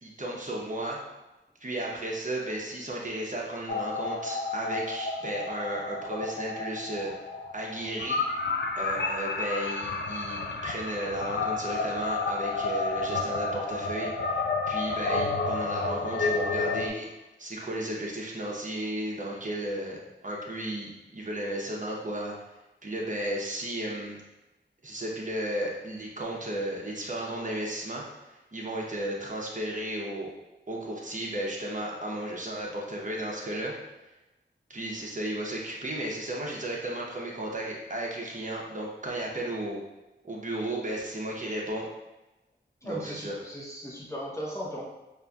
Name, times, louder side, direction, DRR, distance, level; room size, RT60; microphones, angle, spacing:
voice 1, 0.0-1.0 1.6-7.1 7.5-8.2 8.7-14.4 14.7-17.1 17.4-22.3 22.8-24.2 24.8-30.3 30.7-33.7 34.7-39.8 40.2-41.9 42.8-43.4, right 1 dB, 40° right, -3 dB, 0.9 m, -34 dB
sound 1, 3.7-16.9, left 3 dB, 65° left, 0.4 m, -31 dB
voice 2, 42.8-44.8, equal, 15° left, -4 dB, 1.0 m, -37 dB
5.3 x 2.6 x 2.3 m, 1.0 s
wide cardioid pair, 70°, 19 cm